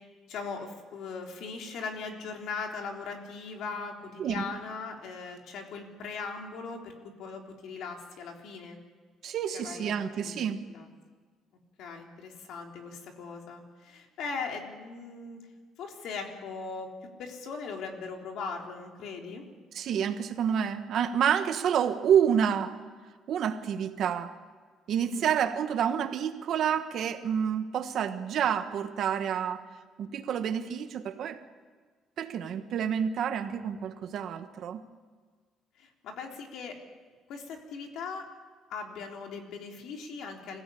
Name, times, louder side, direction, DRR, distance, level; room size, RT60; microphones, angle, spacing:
voice 1, 0.3-8.8 9.5-10.9 11.8-15.4 15.8-16.9 17.2-19.4 25.0-25.4 35.8-36.7 37.3-38.3 38.7-40.6, left 4 dB, 65° left, 2 dB, 3.6 m, -39 dB
voice 2, 9.2-10.7 19.7-22.8 23.3-24.4 24.9-29.6 30.0-31.4 32.2-34.8, right 8 dB, 50° right, 9 dB, 1.4 m, -28 dB
25.5 x 16.5 x 8.6 m, 1.5 s
cardioid pair, 150°, 0 cm